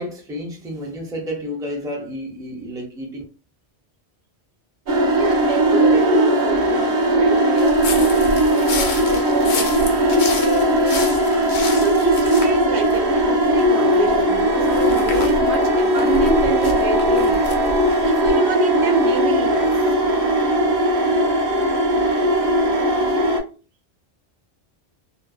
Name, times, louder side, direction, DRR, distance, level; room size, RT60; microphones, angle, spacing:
voice 1, 0.0-3.2, equal, 5° right, 0.5 m, -31 dB
sound 1, 4.9-23.4, right 1 dB, 50° right, 0.7 m, -18 dB
voice 2, 5.1-17.4 17.9-19.7, right 4 dB, 80° right, 0.9 m, -27 dB
sound 2, 7.6-13.7 14.0-18.3, left 3 dB, 85° left, 0.9 m, -30 dB
2.5 x 2.1 x 2.3 m
omnidirectional pair, 1.1 m